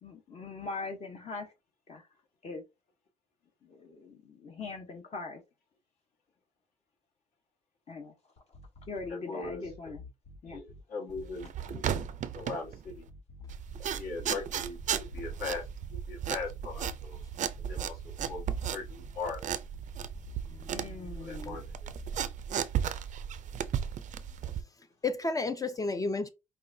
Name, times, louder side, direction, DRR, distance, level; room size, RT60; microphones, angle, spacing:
voice 1, 0.0-1.5 1.9-2.1 2.4-2.6 3.6-5.4 7.9-8.1 8.9-10.0 10.4-10.6 20.7-21.6, left 3 dB, 40° left, 0.9 m, -41 dB
sound 1, 8.4-9.1 9.4-10.8 11.1-12.5 12.8-14.2 14.6-16.0 16.3-17.7 18.0-19.4 19.7-21.1 21.4-22.1, left 2 dB, 80° left, 1.8 m, -50 dB
voice 2, 9.1-9.9 10.4-12.0 12.3-13.1 13.9-15.7 15.9-17.2 17.7-18.4 18.7-19.4 21.2-21.9, left 4 dB, 60° left, 1.6 m, -40 dB
handling furniture, 11.1-13.0 13.5-24.6, right 9 dB, 45° right, 0.5 m, -35 dB
voice 3, 20.5-21.6 25.0-26.3, left 3 dB, 20° left, 0.5 m, -33 dB
5.4 x 2.3 x 2.7 m
cardioid pair, 110°, 17 cm